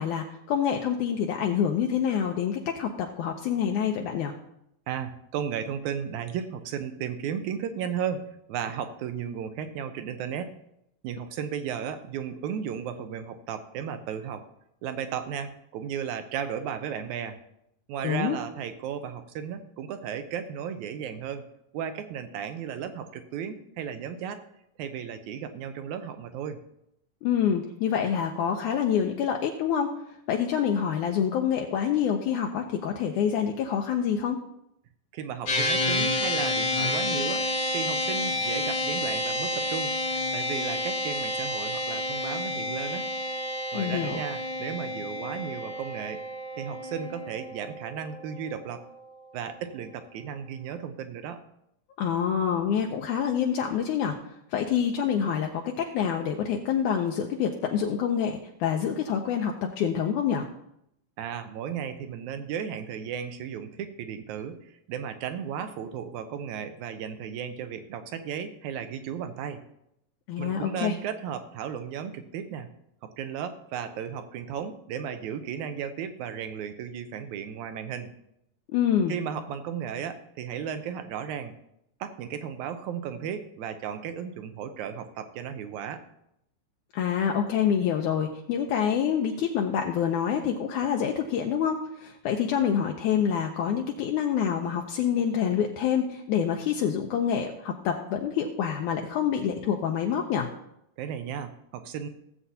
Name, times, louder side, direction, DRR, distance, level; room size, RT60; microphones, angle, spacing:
voice 1, 0.0-4.3 18.0-18.4 27.2-29.9 30.3-34.4 43.7-44.2 52.0-54.2 54.5-60.5 70.3-70.9 78.7-79.2 86.9-100.5, left 8 dB, 75° left, 2 dB, 2.0 m, -27 dB
voice 2, 4.9-10.6 11.0-14.5 14.8-17.4 17.9-21.4 21.7-24.4 24.8-26.6 35.1-37.5 37.7-40.0 40.3-43.1 43.7-46.2 46.6-48.8 49.3-51.4 61.2-69.6 70.4-72.7 73.0-78.1 79.1-81.6 82.0-86.0 101.0-102.1, right 8 dB, 75° right, 9 dB, 1.9 m, -35 dB
sound 1, 35.5-49.0, left 1 dB, 60° left, 1.2 m, -30 dB
17.5 x 7.8 x 2.8 m, 0.78 s
omnidirectional pair, 3.9 m